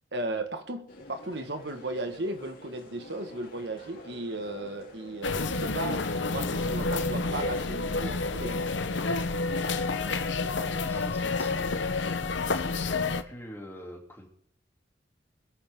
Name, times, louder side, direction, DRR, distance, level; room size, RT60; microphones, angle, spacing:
voice 1, 0.1-8.6, right 2 dB, 65° right, 7 dB, 1.7 m, -35 dB
sound 1, 0.9-9.6, left 1 dB, 50° left, 3.7 m, -49 dB
sound 2, 5.2-13.2, left 3 dB, 85° left, 1.0 m, -29 dB
voice 2, 10.5-12.0 12.8-14.3, equal, 15° left, 0 dB, 3.1 m, -45 dB
23.0 x 11.0 x 3.8 m, 0.66 s
head